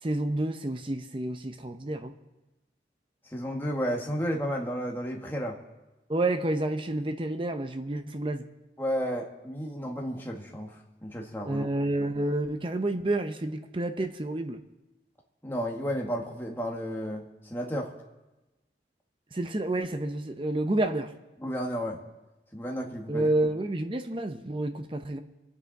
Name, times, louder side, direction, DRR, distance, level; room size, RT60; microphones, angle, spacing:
voice 1, 0.0-2.1 6.1-8.5 11.5-14.6 19.3-21.1 23.1-25.2, right 1 dB, 30° right, 8 dB, 0.7 m, -29 dB
voice 2, 3.3-5.6 8.8-11.7 15.4-17.3 17.5-17.9 21.4-22.0 22.5-23.3, equal, 10° left, -1 dB, 1.7 m, -32 dB
25.5 x 9.4 x 4.1 m, 1.1 s
head